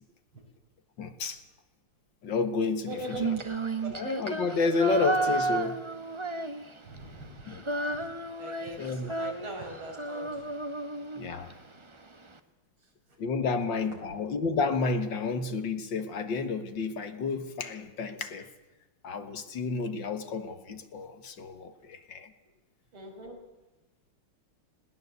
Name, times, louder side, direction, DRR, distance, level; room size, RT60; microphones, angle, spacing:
voice 1, 1.0-1.4 2.2-3.3 3.9-5.8 7.5-7.6 8.8-9.1 11.2-11.5 13.2-18.5 19.0-22.3, left 4 dB, 60° left, 9 dB, 2.2 m, -31 dB
voice 2, 2.9-3.4 3.7-4.1 6.8-7.4 7.9-8.1 8.4-10.4 11.3-11.4 13.4-13.6 22.9-23.5, right 1 dB, 80° right, 2 dB, 6.0 m, -42 dB
Female singing, 3.1-7.0 7.2-11.5, right 2 dB, 20° right, 1.0 m, -32 dB
20.5 x 18.5 x 8.1 m, 1.1 s
omnidirectional pair, 2.3 m